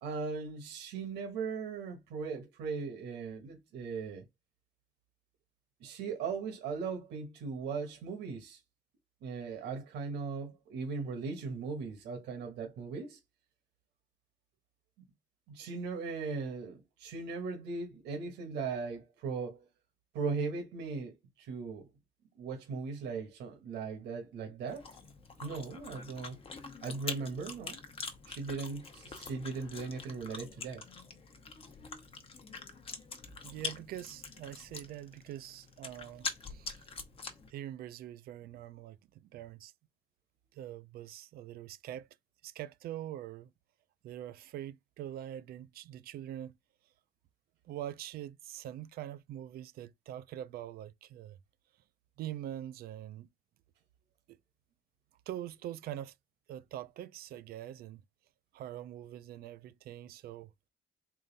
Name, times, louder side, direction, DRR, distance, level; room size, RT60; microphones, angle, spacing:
voice 1, 0.0-4.2 5.8-8.6 9.2-13.2 15.5-19.7 20.1-21.9 22.3-24.9 25.4-26.4 26.8-27.8 28.3-30.8, right 4 dB, 85° right, 1.2 m, -38 dB
Chewing mastication, 24.7-37.5, left 4 dB, 35° left, 0.8 m, -44 dB
voice 2, 33.4-36.8 37.5-39.7 40.5-42.1 42.4-43.5 44.0-46.6 47.6-51.4 52.2-53.3 54.3-54.4 55.3-56.1 56.5-58.0 58.5-60.5, right 12 dB, 65° right, 0.4 m, -44 dB
3.7 x 2.5 x 3.9 m
cardioid pair, 110°, 17 cm